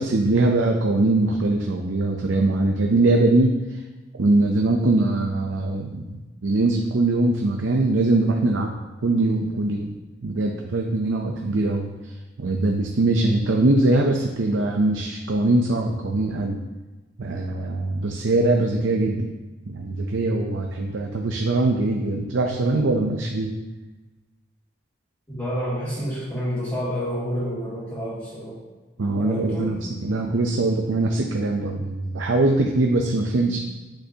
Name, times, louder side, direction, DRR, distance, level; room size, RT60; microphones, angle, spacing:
voice 1, 0.0-3.6 4.2-8.8 9.0-9.9 10.2-11.9 12.4-16.6 17.2-19.3 19.7-23.5 29.0-29.8 30.0-33.6, right 2 dB, 90° right, 1 dB, 0.6 m, -22 dB
voice 2, 25.3-28.6 29.2-29.7, equal, 20° left, -14 dB, 2.4 m, -29 dB
8.3 x 6.3 x 2.8 m, 1.2 s
head